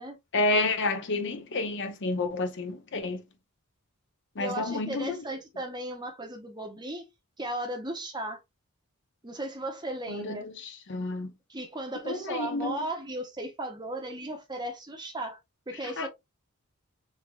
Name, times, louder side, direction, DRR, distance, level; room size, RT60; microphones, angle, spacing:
voice 1, 0.3-3.2 4.4-5.2 10.1-11.3 12.0-12.7 15.8-16.1, left 2 dB, 55° left, 0.7 m, -30 dB
voice 2, 4.4-7.1 7.4-8.4 9.2-10.5 11.5-15.4 15.7-16.1, right 1 dB, 20° right, 0.8 m, -36 dB
3.5 x 3.4 x 2.3 m
head